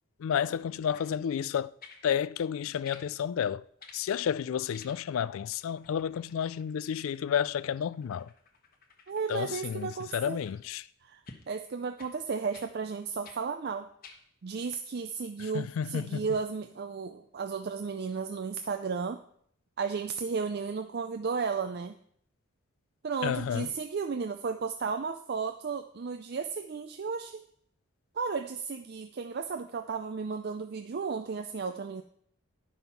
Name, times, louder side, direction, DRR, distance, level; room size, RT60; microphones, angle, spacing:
voice 1, 0.2-1.7 2.0-3.6 3.9-8.3 9.3-10.9 15.4-16.3 23.2-23.7, left 8 dB, 70° left, 0.3 m, -31 dB
sound 1, 0.8-1.1 1.8-2.1 2.8-3.1 3.8-4.0 4.7-5.2 5.5-10.6 11.3-11.5 12.0-12.2 12.5-12.7 13.2-13.4 14.0-14.2 14.8-14.9, left 4 dB, 40° left, 1.1 m, -54 dB
voice 2, 9.1-10.4 11.0-13.9 14.4-19.2 19.8-22.0 23.0-27.4 28.2-32.0, right 5 dB, 45° right, 0.4 m, -34 dB
11.0 x 5.6 x 5.7 m
head